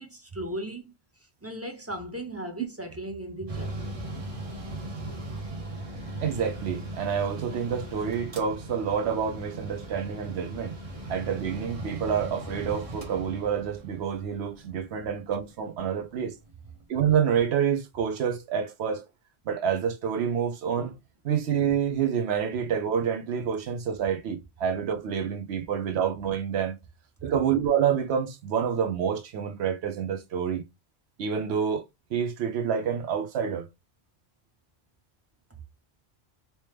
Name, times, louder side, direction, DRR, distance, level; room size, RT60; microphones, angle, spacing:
voice 1, 0.0-3.8 5.0-5.2, right 1 dB, 20° right, 0.4 m, -37 dB
Mechanical fan, 3.5-16.8, right 2 dB, 35° right, 0.9 m, -39 dB
voice 2, 6.2-10.8 11.1-16.3 16.9-19.0 19.5-20.9 21.2-26.8 27.2-30.6 31.2-31.8 32.1-33.7, right 8 dB, 90° right, 0.9 m, -28 dB
3.1 x 3.0 x 3.2 m
omnidirectional pair, 1.1 m